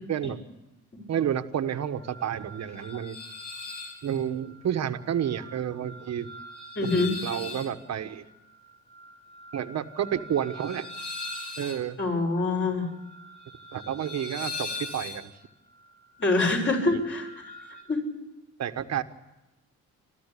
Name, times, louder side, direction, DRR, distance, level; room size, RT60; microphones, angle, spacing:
voice 1, 1.1-3.2 4.0-6.3 6.8-8.2 9.5-10.9 11.6-12.0 13.7-15.3 18.6-19.0, right 9 dB, 60° right, 9 dB, 1.4 m, -30 dB
sound 1, 1.6-17.8, left 2 dB, 80° left, 5.9 m, -42 dB
voice 2, 6.7-7.1 12.0-12.9 16.2-17.3 17.9-18.0, left 3 dB, 40° left, 1 dB, 6.8 m, -25 dB
29.0 x 13.0 x 8.4 m, 1.0 s
cardioid pair, 90°, 30 cm